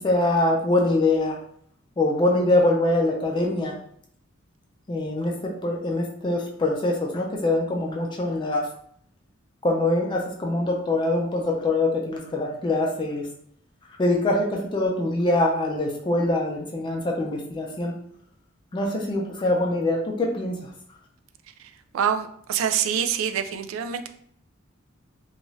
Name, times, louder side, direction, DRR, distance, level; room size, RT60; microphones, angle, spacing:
voice 1, 0.0-1.4 2.0-3.8 4.9-8.7 9.6-13.3 14.0-17.9 18.7-20.7, left 2 dB, 25° left, 0 dB, 0.3 m, -24 dB
voice 2, 21.9-24.1, right 8 dB, 85° right, 9 dB, 0.3 m, -25 dB
2.6 x 2.3 x 3.0 m, 0.63 s
head